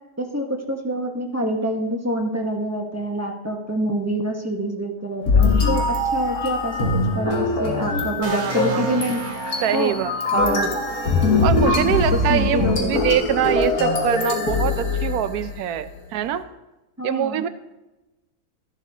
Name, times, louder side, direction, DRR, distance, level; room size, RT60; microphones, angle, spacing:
voice 1, 0.2-9.2 9.7-9.9 10.3-10.7 11.8-12.0 12.3-13.0 17.0-17.5, right 1 dB, 15° right, 1 dB, 0.8 m, -26 dB
sound 1, 5.3-15.6, left 3 dB, 75° left, 2.1 m, -22 dB
sound 2, 8.2-12.0, right 4 dB, 50° right, 1.3 m, -34 dB
voice 2, 8.2-8.9 9.6-10.6 11.4-16.5 17.0-17.5, right 10 dB, 85° right, 12 dB, 1.1 m, -24 dB
13.5 x 10.5 x 2.7 m, 1.0 s
omnidirectional pair, 1.6 m